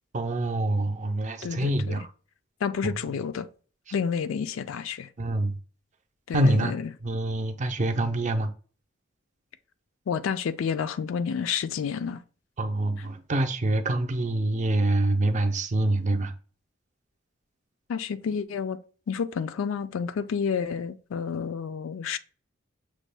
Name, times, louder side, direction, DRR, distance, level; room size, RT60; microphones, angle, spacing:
voice 1, 0.1-2.1 5.2-5.6 6.3-6.7 7.0-8.5 12.6-16.3, right 1 dB, 40° right, 0.5 m, -25 dB
voice 2, 1.4-2.0 2.6-3.5 3.9-5.1 6.3-6.9 10.1-12.2 17.9-18.8 19.1-22.2, left 6 dB, 75° left, 0.4 m, -30 dB
6.2 x 2.2 x 3.3 m
head